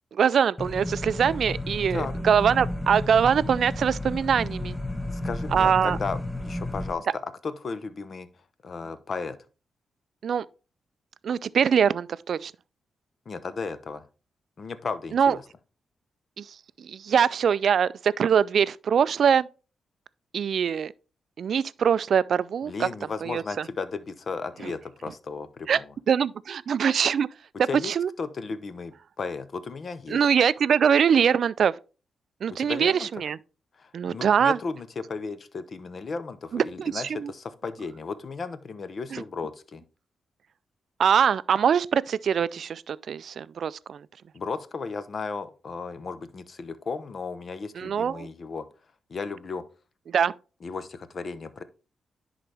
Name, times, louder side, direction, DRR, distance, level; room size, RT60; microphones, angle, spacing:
voice 1, 0.1-4.8 5.5-6.0 10.2-10.4 11.2-12.5 15.1-15.4 16.4-16.5 16.8-19.5 20.3-20.9 21.4-22.9 23.2-23.6 24.6-24.7 25.7-25.8 26.1-27.3 27.8-28.1 30.1-31.7 32.4-33.4 33.9-34.6 36.5-37.3 39.1-39.2 41.0-44.0 47.8-48.3 50.1-50.3, right 7 dB, 65° right, 0.3 m, -23 dB
sound 1, 0.6-6.9, left 1 dB, 10° left, 0.8 m, -32 dB
voice 2, 5.1-8.3 8.6-9.4 13.3-14.0 14.6-15.4 22.7-25.9 27.7-27.9 28.2-30.2 32.6-33.1 33.8-39.8 44.3-48.6 49.1-49.6 50.6-51.6, left 4 dB, 50° left, 0.8 m, -35 dB
10.5 x 4.0 x 3.3 m
cardioid pair, 105°, 0 cm